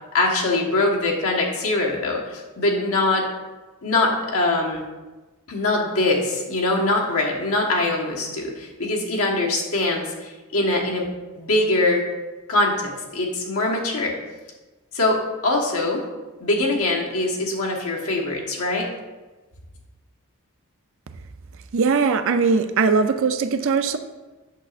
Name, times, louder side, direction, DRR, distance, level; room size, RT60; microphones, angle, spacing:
voice 1, 0.1-3.3 3.8-4.8 5.5-11.1 11.4-12.0 12.5-14.1 14.9-16.0 16.4-18.9, left 2 dB, 75° left, -1 dB, 1.3 m, -23 dB
voice 2, 21.7-24.0, right 5 dB, 60° right, 9 dB, 0.5 m, -20 dB
8.1 x 6.8 x 2.5 m, 1.2 s
head